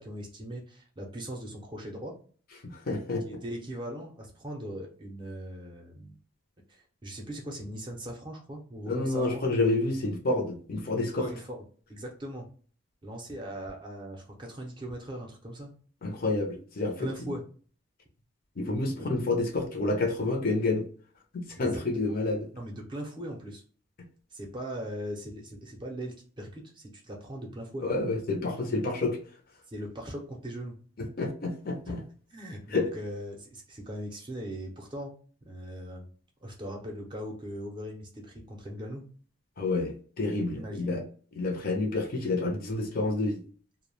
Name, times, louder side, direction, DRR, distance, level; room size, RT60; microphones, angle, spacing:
voice 1, 0.0-2.2 3.3-6.2 6.7-9.6 11.1-11.6 11.9-12.5 13.0-15.7 17.0-17.4 18.9-19.1 21.6-21.8 22.5-23.6 24.3-27.9 29.7-30.8 32.3-35.1 35.5-36.1 36.4-39.0 40.5-41.0, equal, 25° right, 1 dB, 0.5 m, -39 dB
voice 2, 2.6-3.2 8.8-11.3 16.0-17.1 18.6-20.9 21.3-22.4 27.8-29.2 31.0-32.0 32.7-32.8 39.6-41.0 41.3-43.4, left 2 dB, 45° left, 3 dB, 0.5 m, -29 dB
2.2 x 2.0 x 3.1 m, 0.43 s
head